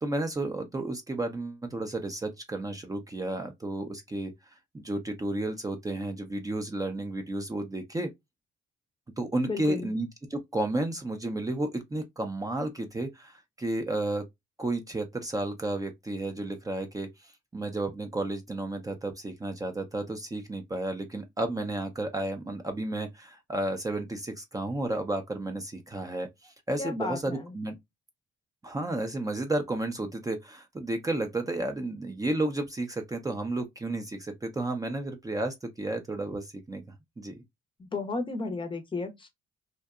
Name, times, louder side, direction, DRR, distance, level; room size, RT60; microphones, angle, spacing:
voice 1, 0.0-4.3 4.7-8.1 9.2-14.2 14.6-27.8 28.6-36.8 37.2-37.4, right 2 dB, 15° right, 0.5 m, -32 dB
voice 2, 9.5-9.9 26.8-27.6 37.8-39.3, left 3 dB, 25° left, 0.6 m, -33 dB
2.7 x 2.1 x 2.3 m
cardioid pair, 90°, 20 cm